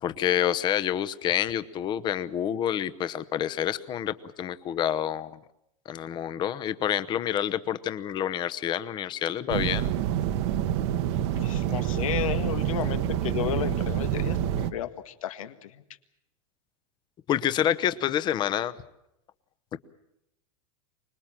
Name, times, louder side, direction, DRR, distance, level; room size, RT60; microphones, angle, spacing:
voice 1, 0.0-5.4 5.9-9.9 17.3-18.7 19.7-19.8, left 10 dB, 25° left, 14 dB, 0.9 m, -28 dB
sound 1, 9.5-14.7, right 10 dB, 55° right, 1.2 m, -27 dB
voice 2, 11.4-15.8, left 11 dB, 85° left, 9 dB, 1.8 m, -33 dB
25.0 x 21.0 x 7.6 m, 0.83 s
supercardioid pair, 150°, 17 cm